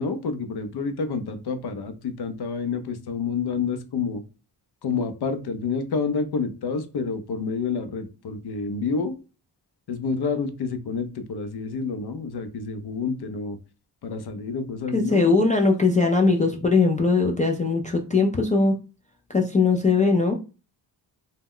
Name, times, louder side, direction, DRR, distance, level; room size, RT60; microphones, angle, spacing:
voice 1, 0.0-4.2 4.8-9.1 9.9-13.6 14.0-15.4, left 5 dB, 60° left, 0.6 m, -28 dB
voice 2, 14.9-18.7 19.3-20.3, left 3 dB, 20° left, 0.3 m, -20 dB
2.2 x 2.1 x 3.6 m
cardioid pair, 75°, 44 cm